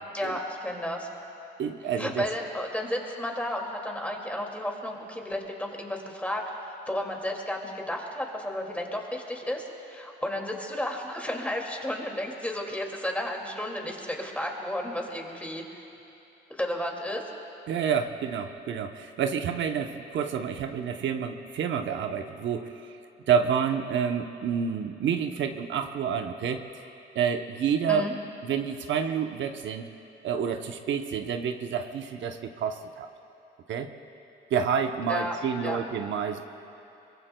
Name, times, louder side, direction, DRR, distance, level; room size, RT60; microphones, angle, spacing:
voice 1, 0.1-1.1 2.0-6.4 6.9-15.8 16.5-17.2 27.9-28.1 35.1-35.4 35.6-35.8, left 1 dB, 5° left, 0 dB, 2.3 m, -32 dB
voice 2, 1.6-2.2 17.7-22.7 23.3-26.7 27.1-28.1 28.4-29.9 30.2-33.1 33.7-33.9 34.5-36.4, right 7 dB, 70° right, 5 dB, 0.8 m, -28 dB
23.0 x 22.0 x 2.2 m, 2.8 s
cardioid pair, 90°, 20 cm